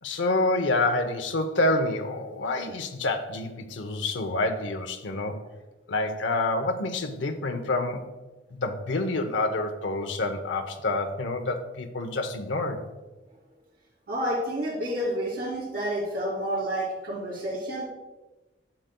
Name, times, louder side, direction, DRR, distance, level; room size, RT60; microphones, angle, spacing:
voice 1, 0.0-5.4 5.9-8.0 8.5-12.8, left 2 dB, 85° left, 5 dB, 0.7 m, -27 dB
voice 2, 14.1-17.8, equal, 55° right, -9 dB, 2.6 m, -29 dB
11.5 x 7.8 x 2.2 m, 1.1 s
head